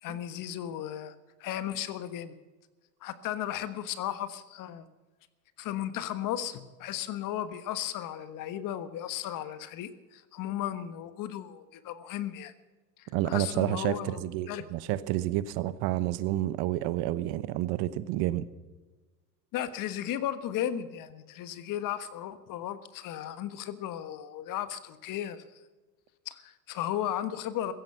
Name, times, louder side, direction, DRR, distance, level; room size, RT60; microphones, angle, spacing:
voice 1, 0.0-1.1 1.4-2.3 3.0-4.9 5.6-12.5 13.0-14.2 14.5-14.7 19.5-25.4 26.2-27.7, left 11 dB, 45° left, 13 dB, 1.5 m, -35 dB
voice 2, 13.1-18.5, right 14 dB, 50° right, 16 dB, 1.0 m, -29 dB
16.5 x 14.5 x 5.8 m, 1.3 s
hypercardioid pair, 100°, 46 cm